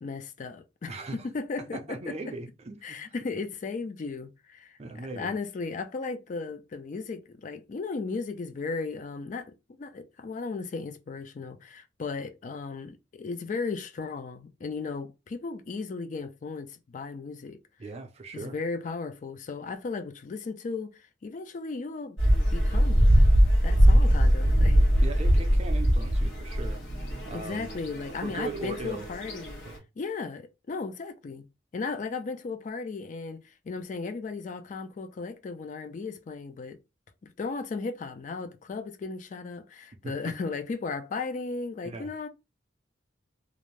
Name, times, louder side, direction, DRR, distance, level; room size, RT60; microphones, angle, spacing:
voice 1, 0.0-2.3 2.8-4.8 5.1-17.6 18.3-22.2 22.5-23.0 23.6-24.8 27.3-29.6 30.0-31.4 31.7-36.8 37.4-42.3, left 4 dB, 40° left, 0.3 m, -36 dB
voice 2, 0.9-1.2 1.7-3.0 4.8-5.3 17.8-18.5 25.0-26.8 27.3-27.7 28.2-29.1 29.6-29.8 40.0-40.3 41.8-42.1, right 3 dB, 35° right, 0.5 m, -38 dB
sound 1, 22.2-29.8, equal, 90° left, 1.1 m, -22 dB
2.5 x 2.0 x 3.1 m
head